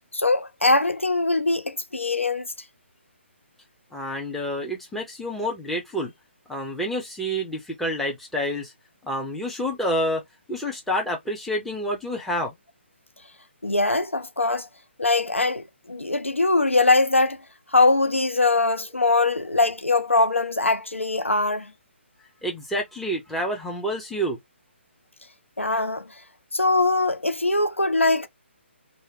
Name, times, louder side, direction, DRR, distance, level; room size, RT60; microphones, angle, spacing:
voice 1, 0.1-2.5 13.6-14.7 15.0-17.4 17.7-21.7 25.6-26.1 26.5-28.3, left 3 dB, 85° left, 0.4 m, -22 dB
voice 2, 3.9-6.1 6.5-8.7 9.0-10.2 10.5-12.5 22.4-24.4, equal, ahead, 0.5 m, -28 dB
2.7 x 2.1 x 2.6 m
figure-of-eight pair, 140°, 7 cm